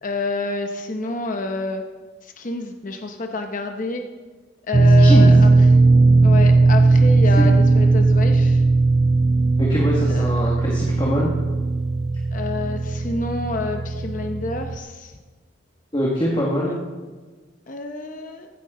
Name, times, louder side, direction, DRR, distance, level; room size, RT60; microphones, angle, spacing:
voice 1, 0.0-1.8 2.2-4.0 4.7-5.7 6.2-8.6 10.1-10.4 12.3-15.2 16.7-16.8 17.7-18.5, left 3 dB, 40° left, 4 dB, 0.8 m, -28 dB
sound 1, 4.7-14.8, right 3 dB, 25° right, 0.5 m, -17 dB
voice 2, 5.0-5.3 7.4-7.5 9.6-11.3 15.9-16.7, equal, 25° left, -4 dB, 1.7 m, -23 dB
15.5 x 9.6 x 3.8 m, 1.3 s
head